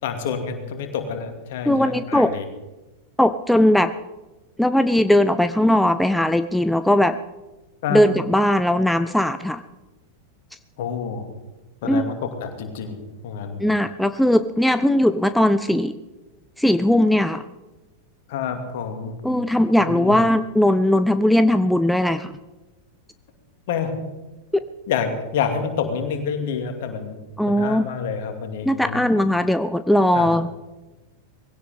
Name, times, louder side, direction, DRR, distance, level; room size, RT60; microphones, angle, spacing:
voice 1, 0.0-2.5 7.8-8.0 10.8-11.3 11.8-13.0 13.2-13.6 18.3-19.2 19.8-20.2 23.7-23.9 24.9-29.1 30.1-30.3, left 7 dB, 55° left, 5 dB, 2.5 m, -28 dB
voice 2, 1.7-2.3 3.2-3.9 4.6-7.2 7.9-9.6 11.9-12.1 13.6-15.9 16.6-17.4 19.2-22.3 27.4-27.9 28.7-30.5, left 1 dB, ahead, 11 dB, 0.5 m, -19 dB
20.0 x 16.5 x 3.7 m, 1.1 s
figure-of-eight pair, 90°, 0 cm